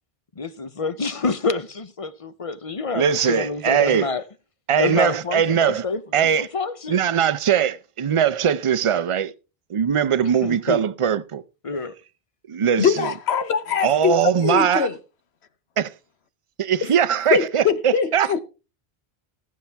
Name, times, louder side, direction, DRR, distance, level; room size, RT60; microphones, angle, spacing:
voice 1, 0.4-4.2 4.8-7.0 10.4-10.8 11.6-11.9, left 4 dB, 35° left, 0.7 m, -27 dB
voice 2, 2.9-4.1 4.7-5.8 6.1-6.5 6.9-9.3 9.7-11.4 12.5-13.1 13.8-14.9 15.8-15.9 16.6-18.4, right 8 dB, 40° right, 0.5 m, -21 dB
voice 3, 12.8-14.2 14.4-14.9 16.8-16.9 17.3-18.4, left 7 dB, 85° left, 1.2 m, -22 dB
19.5 x 7.4 x 3.4 m
omnidirectional pair, 1.1 m